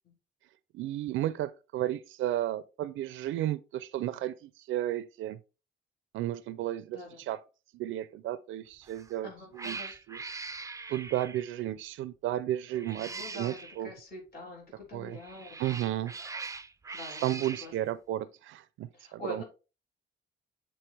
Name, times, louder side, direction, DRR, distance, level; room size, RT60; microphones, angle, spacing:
voice 1, 0.7-5.4 6.1-7.0 7.3-7.4 7.7-9.3 9.5-9.8 10.1-10.2 10.9-13.9 14.9-15.2 15.6-16.1 16.9-19.4, right 13 dB, 80° right, 0.5 m, -33 dB
Cat, 8.8-9.1 9.5-11.6 12.7-13.8 15.1-17.7, right 4 dB, 15° right, 0.4 m, -42 dB
voice 2, 9.2-9.9 12.9-15.5 15.9-16.2 16.9-17.7 18.9-19.4, left 1 dB, 50° left, 3.4 m, -45 dB
7.7 x 4.4 x 3.3 m
cardioid pair, 90°, 20 cm